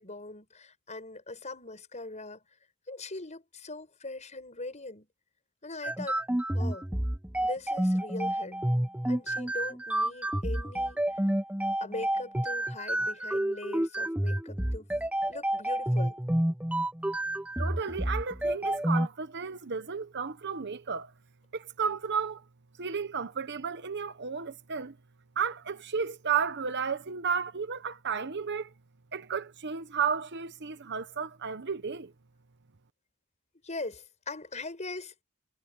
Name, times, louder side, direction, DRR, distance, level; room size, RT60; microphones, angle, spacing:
voice 1, 0.0-2.4 2.9-5.1 5.6-6.2 6.5-6.9 7.4-8.6 9.1-11.3 11.8-14.9 15.3-16.2 33.6-35.2, left 2 dB, 30° left, 7.0 m, -41 dB
sound 1, 5.8-19.1, right 1 dB, 5° right, 0.7 m, -29 dB
voice 2, 17.6-21.1 21.5-22.4 22.8-25.0 25.4-28.7 29.1-32.1, right 6 dB, 50° right, 1.0 m, -33 dB
head